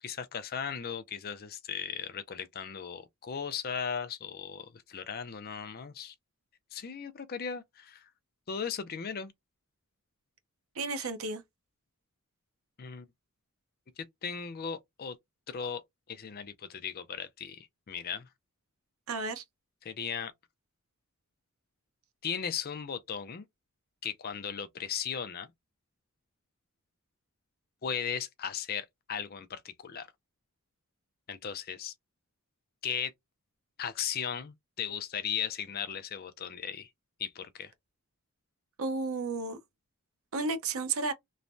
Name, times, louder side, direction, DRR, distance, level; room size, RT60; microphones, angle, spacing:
voice 1, 0.0-6.1 6.7-8.1 8.5-9.3 12.8-13.1 14.0-15.2 15.5-15.8 16.1-18.3 19.8-20.3 22.2-23.4 24.0-25.5 27.8-30.1 31.3-31.9 32.8-33.1 33.8-36.9 37.2-37.7, left 7 dB, 45° left, 0.5 m, -37 dB
voice 2, 10.8-11.4 19.1-19.4 38.8-39.6 40.3-41.1, right 3 dB, 65° right, 0.7 m, -32 dB
3.1 x 2.1 x 2.6 m
head